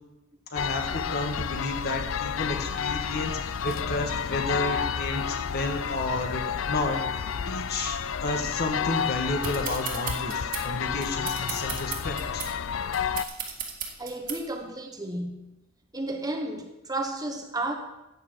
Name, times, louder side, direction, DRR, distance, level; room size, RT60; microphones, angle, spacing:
sound 1, 0.5-13.2, left 7 dB, 80° left, 0.5 m, -30 dB
voice 1, 0.5-7.0 7.5-12.5, left 2 dB, 50° left, 4 dB, 1.6 m, -31 dB
sound 2, 9.4-14.6, right 7 dB, 45° right, 1.9 m, -36 dB
voice 2, 14.0-15.5 15.9-17.7, right 2 dB, 20° right, 4 dB, 1.2 m, -32 dB
14.0 x 9.0 x 4.7 m, 0.96 s
head